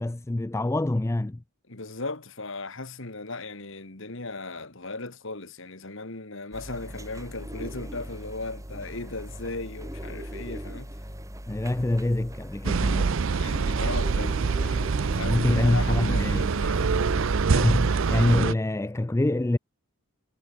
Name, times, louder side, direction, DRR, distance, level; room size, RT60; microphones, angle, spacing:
voice 1, 0.0-1.4 11.5-13.2 15.3-16.5 17.5-19.6, left 1 dB, 10° left, 0.3 m, -25 dB
voice 2, 1.7-10.9 13.2-17.1, left 2 dB, 60° left, 1.9 m, -37 dB
sound 1, 6.5-18.4, equal, 15° right, 3.9 m, -39 dB
sound 2, 12.6-18.5, right 5 dB, 60° right, 0.5 m, -25 dB
head